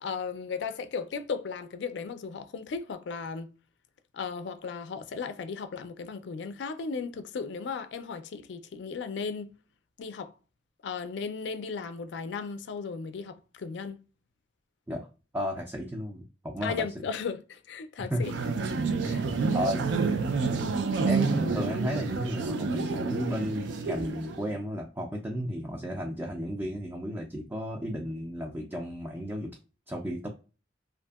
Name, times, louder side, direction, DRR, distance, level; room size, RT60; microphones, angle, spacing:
voice 1, 0.0-3.5 4.1-9.5 10.0-10.3 10.8-14.0 16.6-18.3 19.0-19.2, left 5 dB, 75° left, 0.4 m, -36 dB
voice 2, 15.3-16.7 18.0-18.2 19.5-19.9 21.1-29.5 29.9-30.3, equal, 10° right, 0.3 m, -33 dB
sound 1, 18.2-24.6, right 4 dB, 85° right, 0.4 m, -29 dB
2.6 x 2.5 x 2.3 m
head